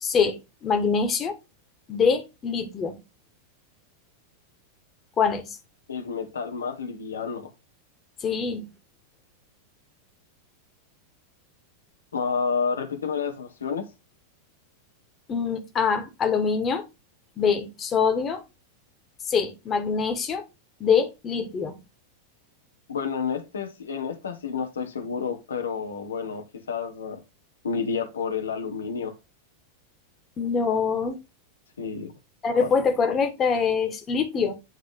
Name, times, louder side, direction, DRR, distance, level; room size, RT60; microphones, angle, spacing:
voice 1, 0.0-1.4 1.9-3.0 5.2-5.4 8.2-8.6 15.3-16.8 17.4-18.4 19.2-20.4 20.8-21.8 30.4-31.2 32.4-34.5, left 5 dB, 25° left, 1.6 m, -24 dB
voice 2, 5.9-7.5 12.1-13.9 22.9-27.2 27.6-29.2 31.8-32.1 32.6-32.7, left 5 dB, 70° left, 1.1 m, -30 dB
9.1 x 3.7 x 3.6 m
figure-of-eight pair, 90°, 0 cm